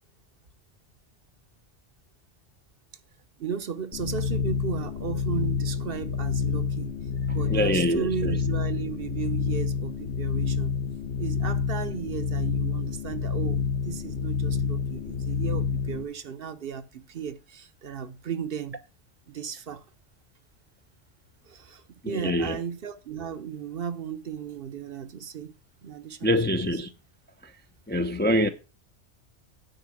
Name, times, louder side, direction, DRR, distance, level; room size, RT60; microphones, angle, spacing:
voice 1, 3.4-7.0 7.3-10.7 11.2-18.8 19.3-19.8 21.5-25.5 25.8-26.7, right 7 dB, 60° right, 0.9 m, -35 dB
sound 1, 3.9-16.0, left 6 dB, 80° left, 1.4 m, -28 dB
voice 2, 7.5-8.3 22.0-22.6 26.2-26.9 27.9-28.5, equal, 15° left, 0.4 m, -24 dB
9.1 x 5.0 x 6.2 m
omnidirectional pair, 1.2 m